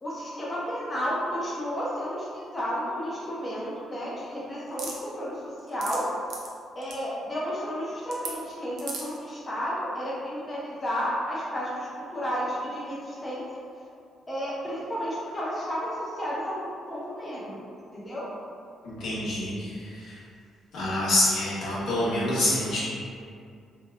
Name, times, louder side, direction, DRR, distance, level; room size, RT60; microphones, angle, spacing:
voice 1, 0.0-5.4 5.7-6.1 6.8-13.4 14.3-16.6 16.9-17.6 17.9-18.3, equal, 20° left, -7 dB, 0.7 m, -32 dB
sound 1, 4.8-5.0 5.6-6.0 6.3-6.5 6.8-7.0 8.1-8.3 8.8-9.2, right 4 dB, 70° right, 0.5 m, -35 dB
voice 2, 18.8-20.1 20.7-22.8, left 1 dB, 75° left, -9 dB, 1.1 m, -26 dB
2.8 x 2.1 x 3.5 m, 2.4 s
cardioid pair, 90°, 0 cm